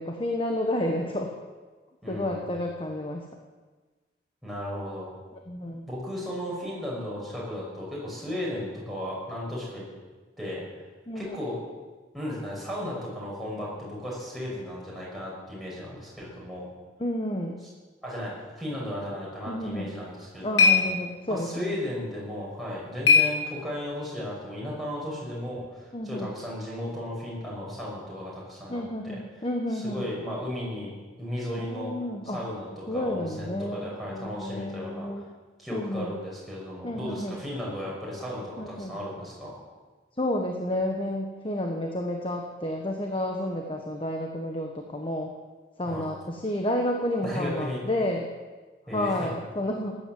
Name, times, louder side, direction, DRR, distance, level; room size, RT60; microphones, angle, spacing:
voice 1, 0.0-1.3 2.1-3.2 5.5-5.9 11.1-11.4 17.0-17.6 19.5-19.9 20.4-21.7 25.9-26.3 28.7-30.1 31.7-32.4 32.9-35.2 35.7-36.1 36.8-37.4 38.6-39.0 40.2-45.3 45.8-48.3 48.9-49.9, left 1 dB, 30° left, 2 dB, 1.3 m, -30 dB
voice 2, 2.0-2.5 4.4-5.1 5.9-9.9 10.4-10.6 11.1-11.6 12.1-16.7 18.0-20.8 21.3-29.2 29.7-30.9 31.2-31.9 32.2-35.1 35.6-39.5 45.9-46.1 47.2-47.8 48.9-49.3, left 1 dB, ahead, -5 dB, 6.1 m, -35 dB
sound 1, 19.8-24.0, left 5 dB, 85° left, 3.0 m, -26 dB
15.5 x 11.0 x 7.8 m, 1.3 s
head